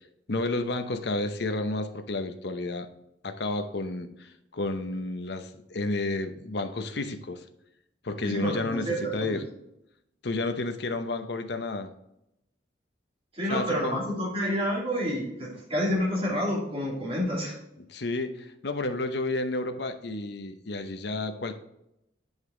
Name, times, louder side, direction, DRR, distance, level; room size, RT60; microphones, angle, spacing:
voice 1, 0.3-2.9 3.2-7.4 8.0-9.4 10.2-11.9 13.5-14.0 17.9-21.6, left 2 dB, 65° left, 8 dB, 0.8 m, -31 dB
voice 2, 8.2-9.4 13.3-17.5, equal, 30° right, -5 dB, 2.9 m, -29 dB
8.2 x 5.3 x 3.8 m, 0.83 s
head